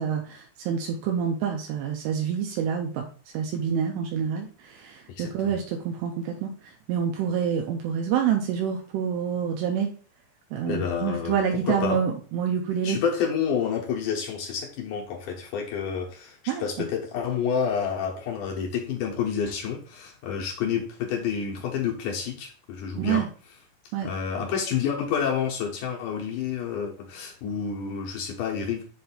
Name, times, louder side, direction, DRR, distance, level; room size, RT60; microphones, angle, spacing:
voice 1, 0.0-3.1 3.3-6.5 6.9-9.9 10.5-13.0 16.5-16.9 23.0-23.3 23.9-24.1, right 7 dB, 85° right, 2 dB, 2.9 m, -27 dB
voice 2, 10.7-11.4 11.6-12.0 12.8-23.3 24.0-28.8, left 7 dB, 70° left, -1 dB, 2.0 m, -29 dB
7.4 x 2.6 x 5.7 m, 0.41 s
omnidirectional pair, 4.9 m